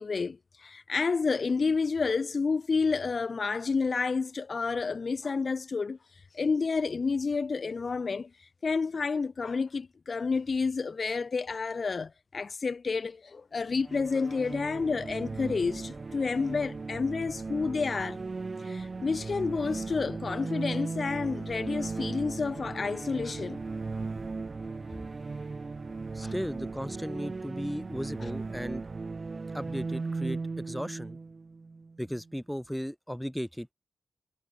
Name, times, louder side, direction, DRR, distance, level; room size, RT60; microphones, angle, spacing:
voice 1, 0.0-18.2 18.6-23.6 26.2-26.3, left 4 dB, 45° left, 1.2 m, -30 dB
sound 1, 13.7-32.3, right 4 dB, 35° right, 0.9 m, -37 dB
voice 2, 26.1-28.8 29.5-31.2 32.0-33.7, equal, ahead, 2.6 m, -36 dB
wide cardioid pair, 110°, 0 cm